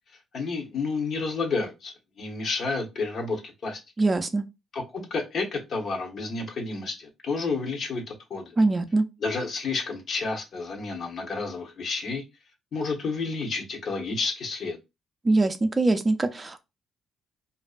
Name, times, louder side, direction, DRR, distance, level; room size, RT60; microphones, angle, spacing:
voice 1, 0.3-3.8 4.7-8.6 9.2-12.2 12.7-14.8, left 4 dB, 60° left, 0.9 m, -30 dB
voice 2, 4.0-4.4 8.6-9.0 15.2-16.6, right 2 dB, 25° right, 0.4 m, -23 dB
2.5 x 2.1 x 2.4 m
cardioid pair, 90°, 0 cm